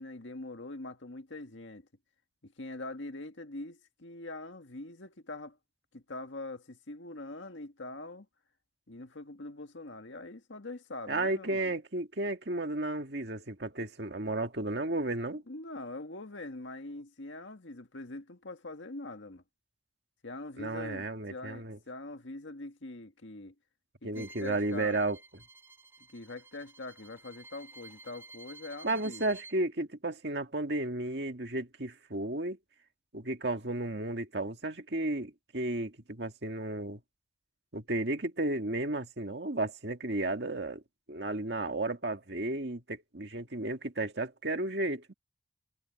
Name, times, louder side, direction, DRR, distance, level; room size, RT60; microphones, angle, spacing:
voice 1, 0.0-1.9 2.4-5.6 5.9-8.3 8.9-11.7 15.5-19.4 20.2-23.5 24.0-25.0 26.1-29.2, left 2 dB, 80° left, 1.8 m, -43 dB
voice 2, 11.1-15.4 20.6-21.8 24.0-25.2 28.8-32.6 33.1-37.0 37.7-40.8 41.1-45.1, right 2 dB, 60° right, 2.1 m, -33 dB
Bowed string instrument, 24.1-29.6, right 3 dB, 10° right, 4.3 m, -53 dB
head